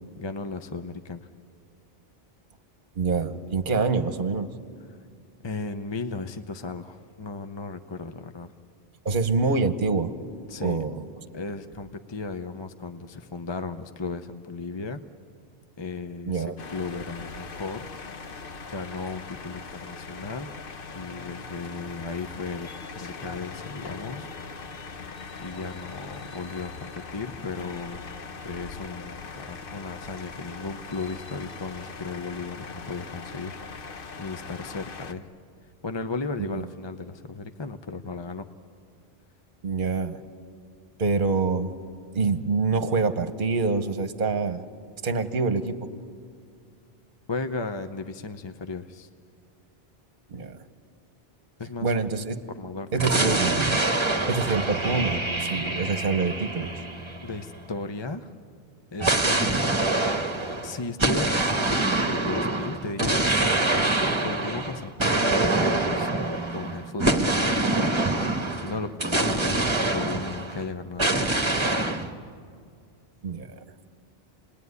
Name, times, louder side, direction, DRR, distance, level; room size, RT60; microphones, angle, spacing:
voice 1, 0.2-1.3 4.9-5.0 5.4-8.5 10.5-10.8 11.3-15.0 15.8-17.9 18.7-20.5 20.9-22.7 22.9-24.3 25.4-28.0 28.4-33.6 34.2-35.3 35.8-38.5 47.3-49.1 51.6-52.0 52.5-53.6 57.2-58.3 58.9-60.0 60.6-63.5 64.2-66.1 66.5-67.9 68.6-71.6, left 4 dB, 30° left, 8 dB, 0.7 m, -35 dB
voice 2, 2.9-4.5 9.0-10.1 10.6-11.0 16.3-16.6 36.5-36.6 39.6-40.2 41.0-41.7 42.1-44.6 45.0-45.8 50.3-50.6 51.8-52.4 52.9-53.8 54.3-56.7 73.2-73.5, right 4 dB, 55° right, 9 dB, 1.2 m, -26 dB
sound 1, 16.6-35.1, left 4 dB, 60° left, 1.2 m, -40 dB
sound 2, 53.0-57.7 59.0-70.6 71.0-72.1, right 2 dB, 25° right, 1.4 m, -25 dB
28.5 x 20.5 x 9.6 m, 2.2 s
omnidirectional pair, 1.1 m